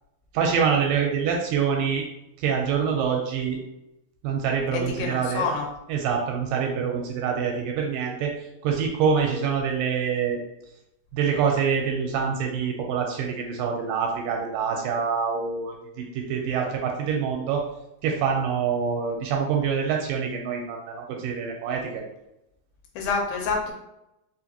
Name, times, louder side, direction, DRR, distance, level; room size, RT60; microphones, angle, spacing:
voice 1, 0.3-2.0 2.4-3.6 4.2-5.5 5.9-8.3 8.6-10.4 11.1-17.6 18.0-22.0, right 6 dB, 80° right, 1 dB, 2.1 m, -25 dB
voice 2, 4.7-5.6 23.0-23.7, left 4 dB, 85° left, 1 dB, 2.6 m, -27 dB
5.7 x 2.4 x 2.8 m, 0.87 s
omnidirectional pair, 4.2 m